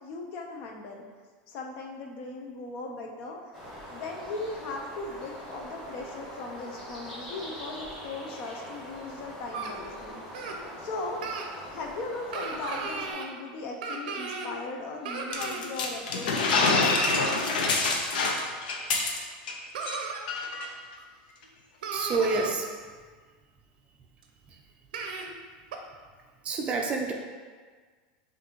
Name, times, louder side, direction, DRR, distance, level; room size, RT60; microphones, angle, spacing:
voice 1, 0.0-1.1 1.5-3.6 3.9-11.4 11.7-17.7, left 3 dB, 50° left, 1 dB, 0.6 m, -38 dB
sound 1, 3.5-13.1, equal, 10° left, 1.5 m, -43 dB
sound 2, 9.5-9.7 10.3-10.6 11.2-11.5 12.3-13.3 13.8-14.5 15.0-15.6 16.6-17.4 19.0-19.1 19.7-20.2 21.0-21.1 21.4-21.5 21.8-22.5 24.2-24.3 24.9-25.3 25.7-25.8, right 4 dB, 90° right, 0.5 m, -35 dB
sound 3, 15.3-19.5 19.8-20.0 20.3-20.7, left 3 dB, 90° left, 0.6 m, -26 dB
voice 2, 21.9-22.6 26.4-27.1, right 3 dB, 25° right, 1 dB, 0.4 m, -27 dB
5.8 x 2.6 x 2.9 m, 1.5 s
supercardioid pair, 140°, 5 cm